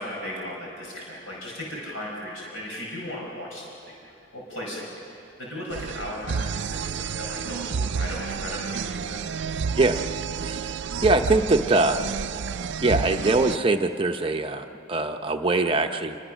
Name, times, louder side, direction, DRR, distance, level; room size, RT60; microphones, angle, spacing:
voice 1, 0.0-3.9 4.3-9.2, left 1 dB, 85° left, -3 dB, 5.2 m, -36 dB
sound 1, 5.7-13.6, right 6 dB, 60° right, 0.4 m, -30 dB
voice 2, 10.4-10.8 11.0-12.0 12.8-16.2, right 2 dB, 25° right, 5 dB, 0.8 m, -22 dB
28.0 x 21.5 x 6.3 m, 3.0 s
head